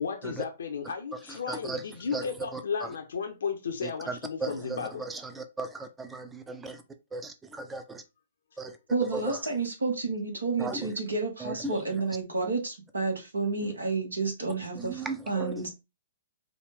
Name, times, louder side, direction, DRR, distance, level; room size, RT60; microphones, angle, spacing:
voice 1, 0.0-5.0, left 6 dB, 65° left, 0.6 m, -34 dB
voice 2, 1.1-2.9 3.8-6.8 7.1-8.0 8.6-8.8 9.1-9.5 10.6-11.0 11.4-12.0 13.6-13.7 14.7-15.7, right 3 dB, 10° right, 0.5 m, -37 dB
voice 3, 8.9-15.0 15.3-15.7, right 3 dB, 80° right, 1.4 m, -30 dB
5.0 x 2.5 x 3.3 m
figure-of-eight pair, 120°, 0 cm